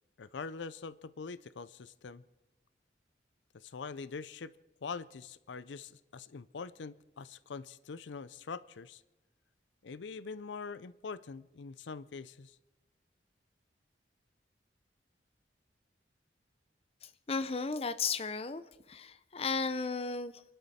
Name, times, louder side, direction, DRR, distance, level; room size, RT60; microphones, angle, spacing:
voice 1, 0.2-2.2 3.5-4.5 4.8-9.0 9.8-12.6, left 5 dB, 90° left, 17 dB, 0.5 m, -44 dB
voice 2, 17.0-18.6 18.9-20.4, left 4 dB, 35° left, 12 dB, 0.6 m, -35 dB
28.0 x 12.0 x 4.2 m, 1.0 s
head